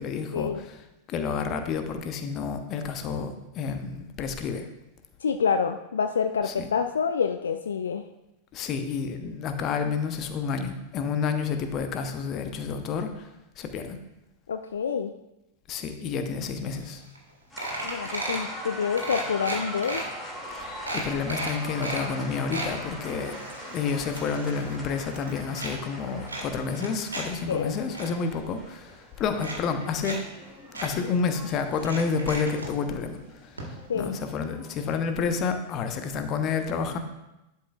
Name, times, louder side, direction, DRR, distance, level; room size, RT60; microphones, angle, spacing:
voice 1, 0.0-4.7 6.4-6.7 8.5-13.3 13.6-14.0 15.7-17.0 20.6-23.4 23.7-30.2 30.8-33.2 33.4-37.0, left 5 dB, 35° left, 7 dB, 0.8 m, -30 dB
voice 2, 5.2-8.0 14.5-15.1 17.8-20.0 27.5-27.8 33.9-34.2, left 6 dB, 70° left, 8 dB, 0.3 m, -27 dB
sound 1, 16.9-17.0 17.2-17.3 17.6-18.5 19.0-20.0 20.5-20.6 20.9-22.0 22.3-22.7 23.2-24.8 25.0-25.7 26.3-27.2 27.6-28.1 28.9-29.0 29.4-30.2 30.4-30.5 30.7-30.9 31.8-32.7 33.6-33.7 34.0-34.1, right 2 dB, 75° right, 1.7 m, -34 dB
sound 2, 17.5-35.2, equal, 10° left, 2.4 m, -42 dB
11.0 x 5.6 x 2.4 m, 0.94 s
figure-of-eight pair, 90°, 0 cm